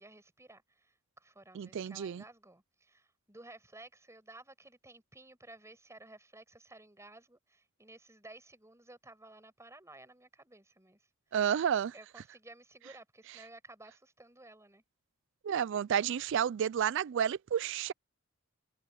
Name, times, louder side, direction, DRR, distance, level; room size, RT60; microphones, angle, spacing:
voice 1, 0.0-11.1 11.9-14.8, right 2 dB, 15° right, 6.2 m, -55 dB
voice 2, 1.5-2.2 11.3-11.9 15.4-17.9, right 8 dB, 60° right, 0.4 m, -31 dB
head